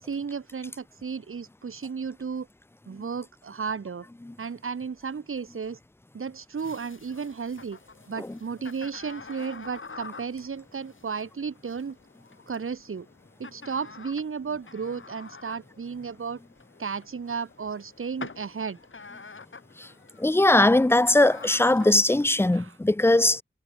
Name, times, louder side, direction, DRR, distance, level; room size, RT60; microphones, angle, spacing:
voice 1, 0.0-2.5 2.9-4.1 4.4-5.8 6.1-7.8 8.1-12.0 12.5-13.1 13.4-16.4 16.8-18.8 22.4-22.8, right 5 dB, 80° right, 1.2 m, -34 dB
sound 1, 6.6-22.5, left 4 dB, 70° left, 3.1 m, -47 dB
voice 2, 20.2-23.4, left 2 dB, 10° left, 0.5 m, -20 dB
wide cardioid pair, 80°, 21 cm